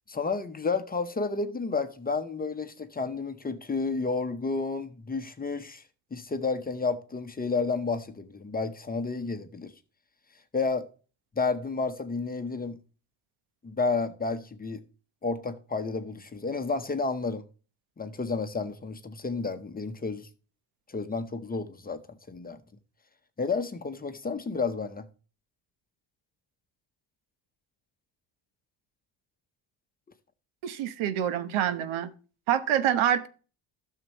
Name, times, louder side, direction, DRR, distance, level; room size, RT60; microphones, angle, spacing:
voice 1, 0.1-5.8 6.1-9.7 10.5-10.9 11.4-12.8 13.6-14.8 15.2-17.4 18.0-20.3 20.9-22.0 22.3-22.6 23.4-25.0, left 4 dB, 20° left, 0.9 m, -31 dB
voice 2, 30.6-32.1 32.5-33.3, right 10 dB, 80° right, 1.0 m, -26 dB
12.5 x 6.7 x 3.0 m
cardioid pair, 115°, 48 cm